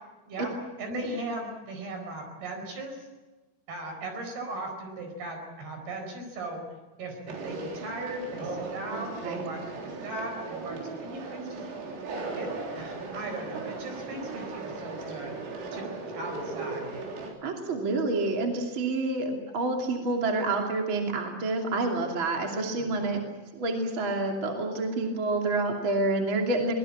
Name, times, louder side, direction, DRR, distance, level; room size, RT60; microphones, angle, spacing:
voice 1, 0.8-3.1 3.7-6.6 7.0-11.6 12.4-12.5 12.8-15.4 15.7-17.0 22.7-22.9, right 2 dB, 50° right, 4 dB, 6.3 m, -38 dB
Conversation, 7.3-17.3, right 3 dB, 90° right, 6.4 m, -37 dB
voice 2, 8.9-9.4 17.4-23.2 23.5-26.7, right 2 dB, 35° right, 2 dB, 2.5 m, -28 dB
23.0 x 20.5 x 8.7 m, 1.2 s
omnidirectional pair, 5.9 m